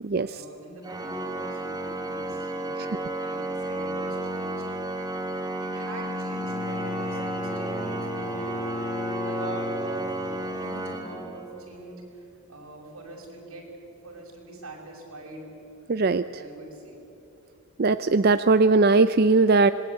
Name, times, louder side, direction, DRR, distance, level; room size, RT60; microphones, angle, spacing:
voice 1, 0.2-4.6 5.6-8.7 9.2-13.7 14.0-15.5 16.3-17.1, right 1 dB, 85° right, 0 dB, 6.4 m, -43 dB
Organ, 0.8-11.8, right 1 dB, 15° right, 1.3 m, -32 dB
Bowed string instrument, 6.3-10.4, left 2 dB, 35° left, 1.2 m, -36 dB
voice 2, 15.9-16.4 17.8-19.7, right 3 dB, 45° right, 11 dB, 0.5 m, -19 dB
26.0 x 21.0 x 8.5 m, 3.0 s
head